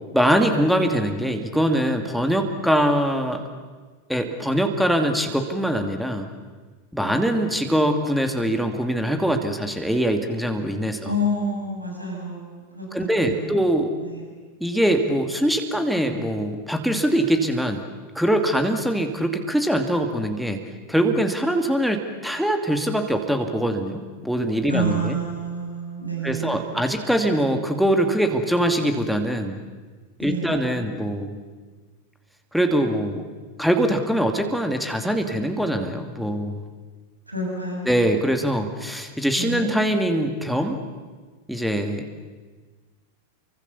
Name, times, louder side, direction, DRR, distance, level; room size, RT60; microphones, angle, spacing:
voice 1, 0.1-3.4 4.1-6.3 6.9-11.1 12.9-14.0 14.6-17.8 18.1-20.6 20.9-25.2 26.2-29.6 30.2-31.4 32.5-33.2 33.6-36.6 37.8-40.8 41.5-42.2, right 1 dB, ahead, 5 dB, 2.5 m, -23 dB
voice 2, 11.0-13.4 14.0-14.3 24.7-26.8 30.2-30.8 37.3-37.9 39.3-39.7, right 1 dB, 85° right, 0 dB, 7.2 m, -29 dB
30.0 x 24.0 x 7.1 m, 1.4 s
figure-of-eight pair, 90°, 0 cm